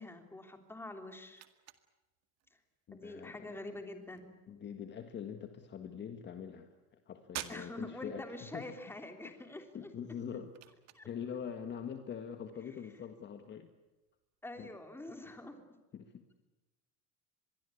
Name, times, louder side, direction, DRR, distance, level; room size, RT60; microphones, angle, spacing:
voice 1, 0.0-1.4 2.9-4.3 7.5-10.2 10.9-11.1 14.4-15.6, left 1 dB, 5° left, 6 dB, 3.4 m, -46 dB
sound 1, 0.5-15.0, right 13 dB, 50° right, 2.1 m, -55 dB
voice 2, 2.9-3.6 4.5-6.7 7.1-8.7 9.7-10.5 11.0-13.7 14.6-14.7 15.9-16.2, left 7 dB, 30° left, 7 dB, 1.8 m, -43 dB
25.5 x 22.0 x 8.6 m, 1.1 s
cardioid pair, 140°, 34 cm